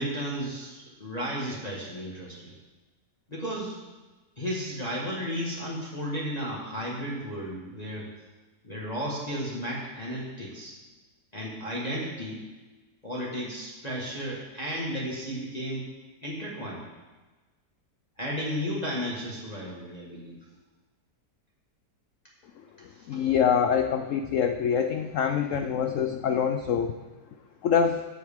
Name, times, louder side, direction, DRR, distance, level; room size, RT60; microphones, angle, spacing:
voice 1, 0.0-2.5 3.3-3.8 4.4-8.1 8.6-10.8 11.3-12.4 13.0-15.8 16.2-16.8 18.2-20.3 23.1-23.2, equal, 25° left, -5 dB, 1.7 m, -33 dB
voice 2, 22.6-27.0 27.6-28.0, left 7 dB, 80° left, 8 dB, 0.7 m, -25 dB
14.5 x 7.8 x 3.6 m, 1.2 s
omnidirectional pair, 1.9 m